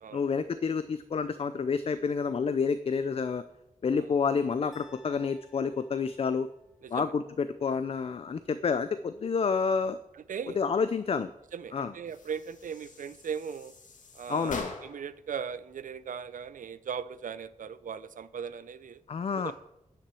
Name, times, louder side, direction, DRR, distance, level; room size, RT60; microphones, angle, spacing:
voice 1, 0.1-3.4 3.8-6.5 6.9-10.0 10.6-11.3 11.7-11.9 14.3-14.7 19.1-19.5, left 5 dB, 45° left, 12 dB, 0.4 m, -29 dB
sound 1, 4.7-6.9, left 3 dB, ahead, 1.3 m, -58 dB
voice 2, 10.1-10.6 11.5-13.7 14.1-19.0 19.4-19.5, right 7 dB, 80° right, 15 dB, 0.5 m, -38 dB
sound 2, 12.1-15.2, left 3 dB, 70° left, 1.7 m, -43 dB
9.9 x 5.9 x 7.5 m, 0.83 s
wide cardioid pair, 175°, 13 cm